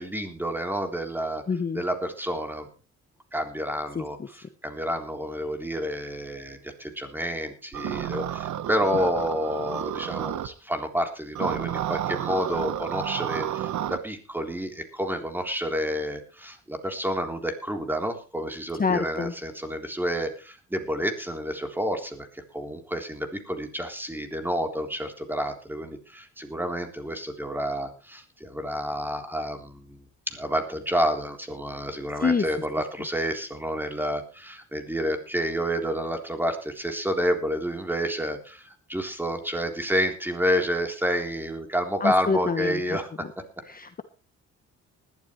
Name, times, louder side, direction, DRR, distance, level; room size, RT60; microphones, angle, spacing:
voice 1, 0.0-1.4 1.7-2.7 3.3-30.0 30.3-43.1, equal, 5° right, 4 dB, 3.6 m, -29 dB
voice 2, 1.5-1.8 3.9-4.3 18.8-19.3 32.2-32.4 42.0-43.3 43.7-44.0, left 5 dB, 30° left, 9 dB, 1.1 m, -27 dB
sound 1, 7.7-10.5 11.3-14.0, right 11 dB, 75° right, 1.2 m, -31 dB
20.0 x 12.5 x 3.2 m, 0.33 s
cardioid pair, 90°, 30 cm